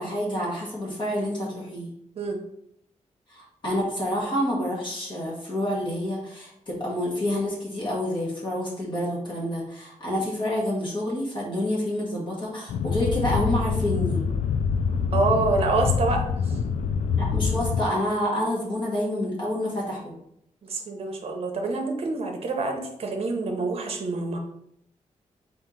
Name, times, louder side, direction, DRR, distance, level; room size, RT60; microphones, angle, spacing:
voice 1, 0.0-1.9 3.3-14.2 17.2-20.1, left 1 dB, 40° left, -5 dB, 1.2 m, -28 dB
sound 1, 12.7-17.9, left 6 dB, 90° left, 0.4 m, -25 dB
voice 2, 15.1-16.6 20.6-24.4, right 3 dB, 50° right, 3 dB, 0.8 m, -27 dB
4.4 x 3.0 x 3.7 m, 0.75 s
wide cardioid pair, 170°, 13 cm